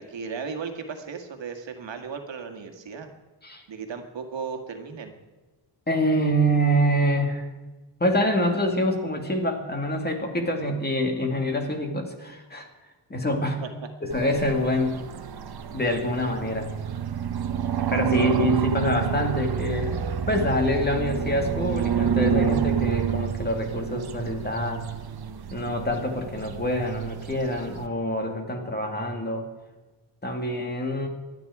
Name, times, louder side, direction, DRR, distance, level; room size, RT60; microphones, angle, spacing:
voice 1, 0.0-3.1 3.7-5.1 13.6-13.7 18.2-18.3, right 5 dB, 75° right, 5 dB, 2.0 m, -36 dB
voice 2, 5.9-7.5 8.0-12.7 13.1-13.6 14.0-15.0 15.7-16.7 17.9-24.9 25.5-29.5 30.2-31.1, equal, 20° left, 3 dB, 2.2 m, -26 dB
sound 1, 14.1-27.9, right 9 dB, 55° right, 1.0 m, -28 dB
25.5 x 9.7 x 4.9 m, 1.2 s
wide cardioid pair, 160°, 45 cm